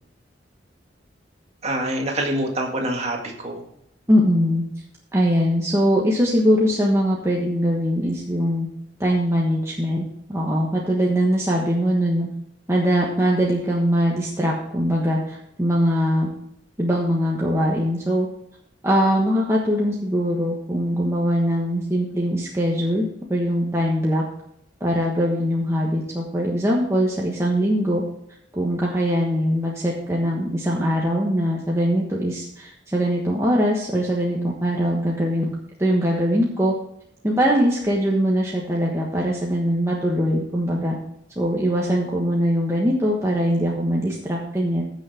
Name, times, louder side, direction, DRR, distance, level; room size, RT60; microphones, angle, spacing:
voice 1, 1.6-3.6, right 1 dB, 35° right, 1 dB, 1.9 m, -25 dB
voice 2, 4.1-4.6 5.1-8.7 9.0-10.0 10.3-12.3 12.7-16.3 16.8-18.3 18.8-24.2 24.8-28.0 28.5-35.5 35.8-36.7 37.2-41.0 41.4-44.8, equal, 15° right, -3 dB, 1.3 m, -21 dB
15.0 x 6.4 x 3.5 m, 0.76 s
head